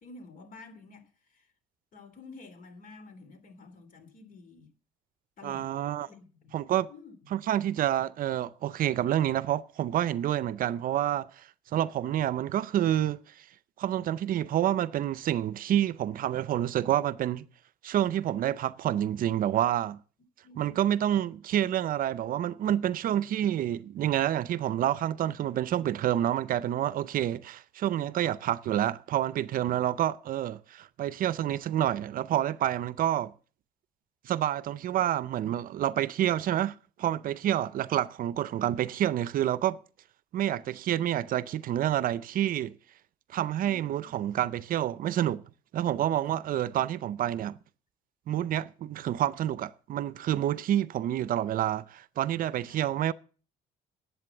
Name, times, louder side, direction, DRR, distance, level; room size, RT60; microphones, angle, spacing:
voice 1, 0.0-1.5 1.9-4.7 5.4-5.7 6.1-6.5 6.9-7.1 20.4-20.8 43.6-44.3 46.2-46.6 52.7-52.8, left 3 dB, 55° left, 3.2 m, -50 dB
voice 2, 5.4-6.1 6.5-6.9 7.3-13.2 13.8-17.5 17.8-20.0 20.6-33.3 34.2-39.8 40.3-42.7 43.3-45.4 45.7-47.6 48.3-53.1, right 11 dB, 55° right, 0.6 m, -28 dB
11.0 x 8.4 x 7.2 m
cardioid pair, 110°, 17 cm